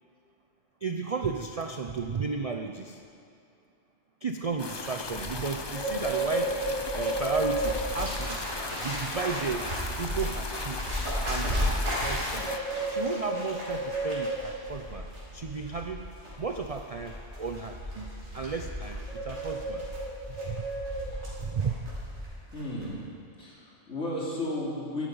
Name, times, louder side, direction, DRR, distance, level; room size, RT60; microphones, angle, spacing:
voice 1, 0.8-3.0 4.2-6.6 6.9-8.4 8.7-9.7 10.0-10.9 11.2-12.5 12.9-15.1 15.3-16.1 16.4-19.9 20.3-20.7 21.4-21.8, right 4 dB, 50° right, 4 dB, 0.4 m, -34 dB
Bird, 4.5-22.3 22.6-22.9, right 1 dB, 65° right, 3.8 m, -33 dB
sound 1, 4.6-12.6, left 4 dB, 40° left, 0.3 m, -38 dB
voice 2, 22.5-23.0 23.4-25.1, left 1 dB, 70° left, -5 dB, 3.1 m, -33 dB
12.5 x 12.0 x 5.5 m, 2.6 s
omnidirectional pair, 1.3 m